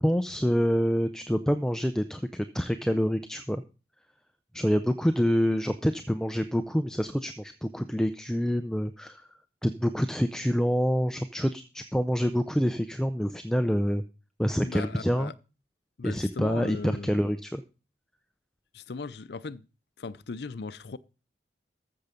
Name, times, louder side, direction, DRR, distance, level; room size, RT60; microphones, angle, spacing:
voice 1, 0.0-3.6 4.5-9.2 9.6-14.0 14.4-15.3 16.0-17.6, equal, 5° left, 0.5 m, -27 dB
voice 2, 14.6-15.3 16.0-17.2 18.7-19.7 20.0-21.0, left 4 dB, 70° left, 0.6 m, -38 dB
14.0 x 6.8 x 5.1 m
head